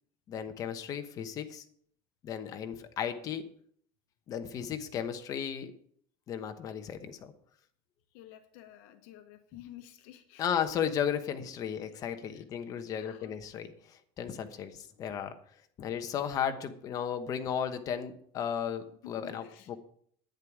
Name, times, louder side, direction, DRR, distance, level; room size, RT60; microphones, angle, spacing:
voice 1, 0.3-1.6 2.2-3.5 4.3-5.7 6.3-7.3 10.4-15.4 15.8-19.8, left 8 dB, 35° left, 8 dB, 1.0 m, -35 dB
voice 2, 8.1-10.5 12.3-12.4 12.8-13.3 19.0-19.7, left 12 dB, 70° left, 7 dB, 1.1 m, -51 dB
10.5 x 9.5 x 4.9 m, 0.63 s
cardioid pair, 160°, 11 cm